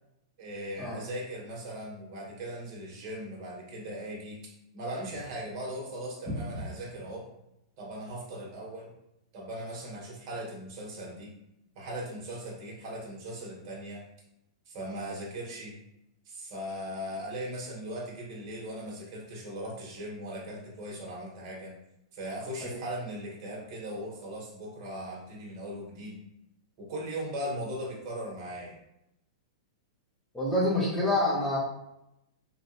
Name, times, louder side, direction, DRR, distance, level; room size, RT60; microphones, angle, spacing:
voice 1, 0.4-7.3 7.8-8.9 9.3-11.3 11.7-14.0 14.7-15.7 16.2-21.7 22.1-26.2 26.8-28.8, equal, 45° right, -2 dB, 1.3 m, -39 dB
voice 2, 30.3-31.6, left 1 dB, 10° left, -5 dB, 1.3 m, -27 dB
3.3 x 2.8 x 2.8 m, 0.85 s
hypercardioid pair, 130°, 3 cm